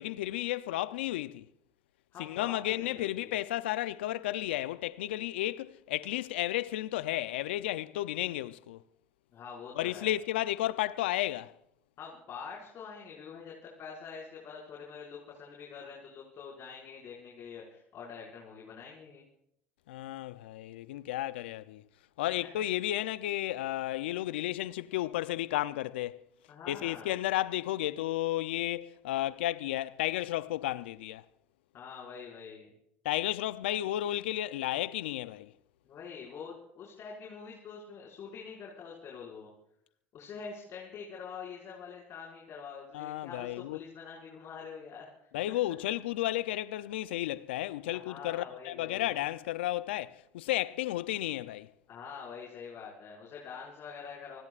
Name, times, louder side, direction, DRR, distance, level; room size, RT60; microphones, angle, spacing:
voice 1, 0.0-1.4 2.2-8.8 9.8-11.5 19.9-21.8 22.2-26.2 26.7-31.2 33.0-35.5 42.9-43.8 45.3-51.7, left 15 dB, 80° left, 0.6 m, -33 dB
voice 2, 2.1-3.3 9.3-10.2 12.0-19.3 22.4-22.6 26.5-27.2 31.7-32.7 35.8-39.5 40.1-45.6 47.9-49.1 51.9-54.4, left 6 dB, 50° left, 5.7 m, -45 dB
29.0 x 20.0 x 2.5 m
hypercardioid pair, 70°, 6 cm